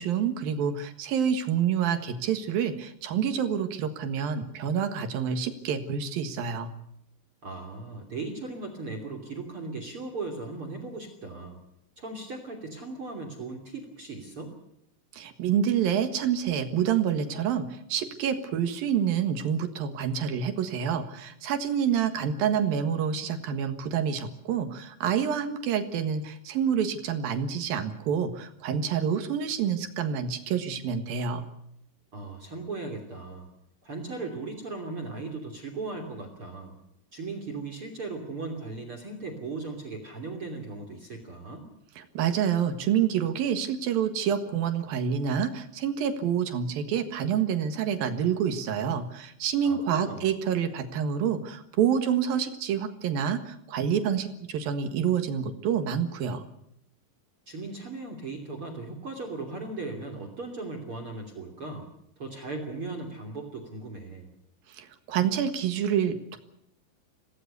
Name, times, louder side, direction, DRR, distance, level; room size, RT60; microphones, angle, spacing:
voice 1, 0.0-6.7 15.1-31.5 42.0-56.4 64.7-66.4, right 8 dB, 60° right, 8 dB, 2.9 m, -27 dB
voice 2, 7.4-11.6 12.0-14.5 32.1-33.5 33.8-36.7 37.1-41.6 49.6-50.3 57.5-61.9 62.2-64.3, right 3 dB, 35° right, 5 dB, 3.1 m, -37 dB
26.0 x 18.0 x 6.8 m, 0.74 s
omnidirectional pair, 5.6 m